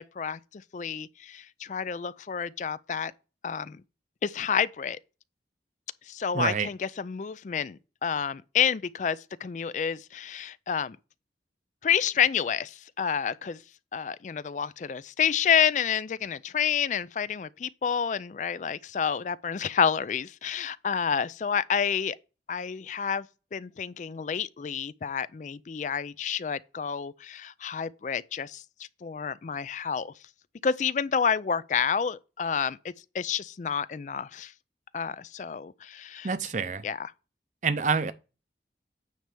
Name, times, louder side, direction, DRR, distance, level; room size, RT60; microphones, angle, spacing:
voice 1, 0.0-3.1 3.4-3.8 4.2-5.0 6.1-11.0 11.8-13.6 13.9-22.2 22.5-23.3 23.5-28.6 29.0-30.1 30.6-34.5 34.9-36.5 36.8-37.1, left 7 dB, 45° left, 0.3 m, -29 dB
voice 2, 6.3-6.7 36.2-36.8 37.6-38.1, right 5 dB, 45° right, 0.6 m, -27 dB
9.3 x 3.4 x 6.7 m
head